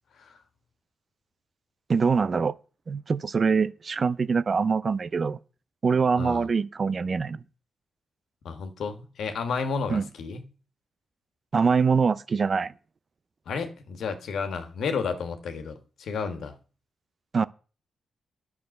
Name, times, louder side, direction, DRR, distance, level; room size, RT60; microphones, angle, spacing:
voice 1, 1.9-2.5 2.9-5.4 5.8-7.4 9.9-10.1 11.5-12.7 17.3-17.4, right 5 dB, 45° right, 0.6 m, -24 dB
voice 2, 6.2-6.5 8.4-10.4 13.5-16.6, left 5 dB, 75° left, 1.6 m, -32 dB
9.9 x 7.2 x 6.5 m
cardioid pair, 70°, 0 cm